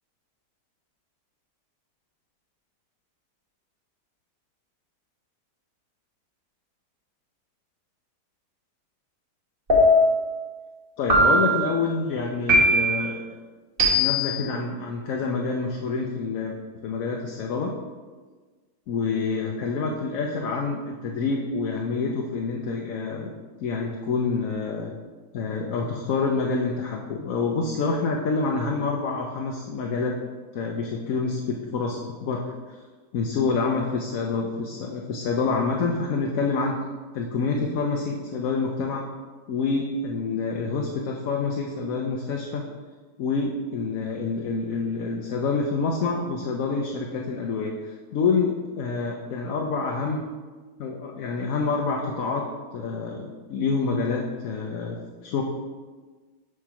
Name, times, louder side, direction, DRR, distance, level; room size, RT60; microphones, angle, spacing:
sound 1, 9.7-10.3 11.1-11.7 12.5-13.1 13.8-14.4, equal, 35° right, 1.3 m, -19 dB
voice 1, 11.0-13.2 14.0-16.5 16.8-17.7 18.9-23.3 23.6-24.9 25.3-30.1 30.5-32.4 33.1-36.7 37.1-39.0 39.5-42.6 43.2-50.2 50.8-52.4 52.7-55.4, left 4 dB, 65° left, 0 dB, 1.0 m, -27 dB
6.4 x 3.7 x 5.7 m, 1.4 s
omnidirectional pair, 1.8 m